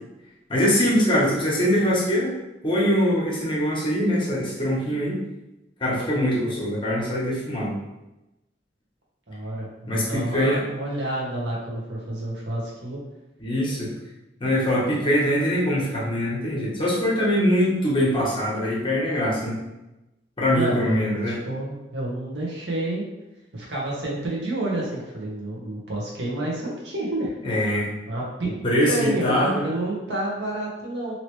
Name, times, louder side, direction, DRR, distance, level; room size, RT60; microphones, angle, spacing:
voice 1, 0.5-2.3 2.6-5.2 5.8-7.7 9.9-10.6 13.4-13.9 14.4-19.6 20.4-21.4 27.4-27.9 28.6-29.5, equal, 30° left, -5 dB, 0.9 m, -23 dB
voice 2, 5.9-6.3 9.3-13.0 20.5-23.0 23.5-27.3 28.1-28.5 28.8-31.1, right 1 dB, 75° right, -4 dB, 1.0 m, -29 dB
2.9 x 2.8 x 3.0 m, 0.97 s
head